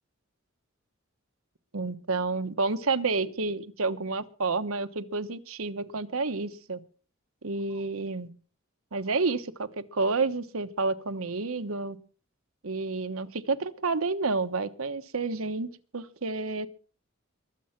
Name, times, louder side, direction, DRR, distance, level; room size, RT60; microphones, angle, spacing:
voice 1, 1.7-6.8 7.4-8.3 8.9-12.0 12.6-16.7, right 3 dB, 80° right, 10 dB, 1.1 m, -30 dB
22.0 x 7.6 x 5.9 m, 0.41 s
head